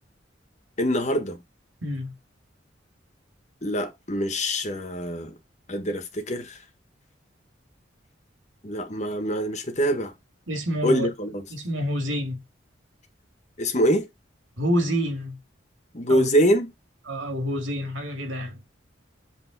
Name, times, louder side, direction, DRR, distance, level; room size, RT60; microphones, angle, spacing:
voice 1, 0.8-1.4 3.6-5.3 5.7-6.6 8.6-10.1 10.8-11.4 13.6-14.1 15.9-16.7, equal, 35° left, 1.4 m, -24 dB
voice 2, 1.8-2.1 10.5-11.1 11.5-12.4 14.6-15.4 16.1-16.3 17.1-18.6, equal, 85° right, 2.4 m, -27 dB
8.1 x 3.6 x 4.0 m
head